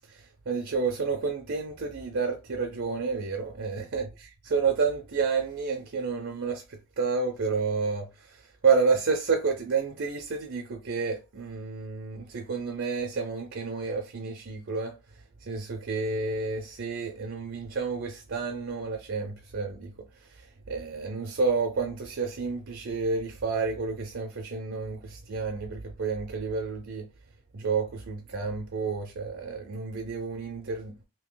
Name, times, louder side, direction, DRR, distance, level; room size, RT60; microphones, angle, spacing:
voice 1, 0.1-15.0 15.4-27.1 27.5-31.0, right 4 dB, 55° right, 0.6 m, -30 dB
2.8 x 2.7 x 3.8 m
head